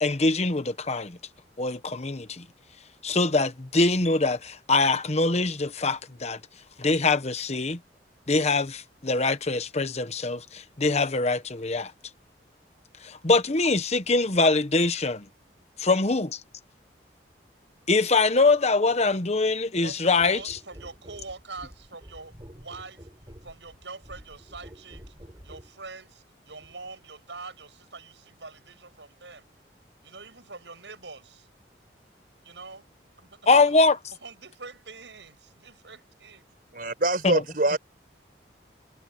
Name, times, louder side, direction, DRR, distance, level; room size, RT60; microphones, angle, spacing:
voice 1, 0.0-1.2 1.6-2.4 3.0-6.4 6.8-7.8 8.3-11.9 13.0-15.2 15.8-16.4 17.9-20.4 33.5-34.0 37.2-37.4, left 3 dB, 40° left, 1.0 m, -23 dB
voice 2, 19.8-23.1 23.4-25.1 25.4-29.5 30.0-31.5 32.4-32.9 33.2-33.5 34.2-36.5, right 3 dB, 80° right, 7.8 m, -44 dB
sound 1, 20.2-25.8 26.6-26.8, equal, 25° right, 5.1 m, -48 dB
voice 3, 36.7-37.8, right 2 dB, 50° right, 4.7 m, -24 dB
head